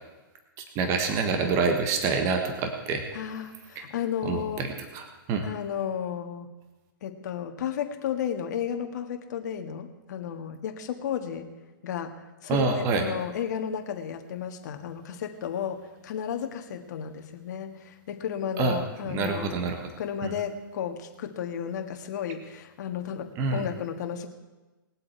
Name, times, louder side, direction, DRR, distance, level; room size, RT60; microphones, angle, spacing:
voice 1, 0.6-3.0 3.7-3.9 4.2-4.7 4.9-5.5 12.5-13.1 18.6-18.8 19.1-19.8 20.2-20.3 23.4-23.7, right 4 dB, 25° right, 5 dB, 1.4 m, -27 dB
voice 2, 3.1-4.6 5.4-6.5 7.0-11.5 11.8-12.1 12.4-19.6 20.0-24.3, left 8 dB, 50° left, 5 dB, 1.7 m, -33 dB
20.5 x 7.7 x 4.5 m, 1.2 s
hypercardioid pair, 155°, 12 cm